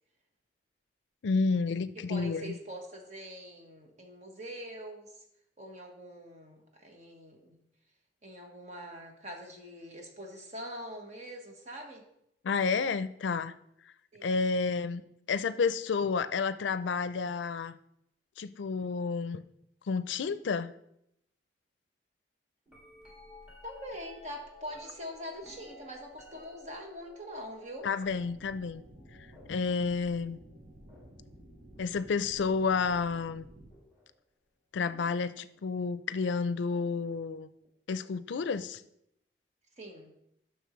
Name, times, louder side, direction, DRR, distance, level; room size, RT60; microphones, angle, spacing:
voice 1, 1.2-2.5 12.4-13.5 14.2-15.0 15.3-17.8 18.4-19.4 19.9-20.7 27.8-28.8 29.5-30.4 31.8-33.5 34.7-37.5 37.9-38.8, left 5 dB, 85° left, 14 dB, 0.4 m, -30 dB
voice 2, 1.9-5.2 5.6-7.6 8.2-12.1 14.1-14.3 23.6-27.9 39.8-40.1, equal, 40° right, 2 dB, 1.3 m, -44 dB
sound 1, 22.7-32.8 33.7-34.1 34.9-35.9 37.6-37.7, left 2 dB, 5° right, 2.0 m, -56 dB
sound 2, 28.0-33.7, right 1 dB, 70° right, 1.3 m, -53 dB
10.5 x 6.3 x 3.1 m, 0.78 s
head